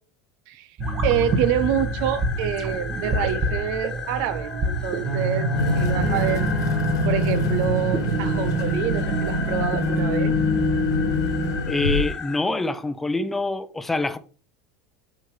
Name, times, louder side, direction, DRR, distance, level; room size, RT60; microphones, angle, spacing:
sound 1, 0.8-12.4, left 6 dB, 30° left, 1.3 m, -36 dB
sound 2, 0.8-11.6, right 1 dB, 40° right, 1.5 m, -26 dB
voice 1, 1.0-5.5 5.8-6.5 7.1-10.4, right 10 dB, 65° right, 0.6 m, -27 dB
sound 3, 5.6-12.1, left 3 dB, 85° left, 0.9 m, -27 dB
voice 2, 11.7-14.2, left 2 dB, 10° left, 0.7 m, -25 dB
7.9 x 5.7 x 3.2 m
hypercardioid pair, 90°, 2 cm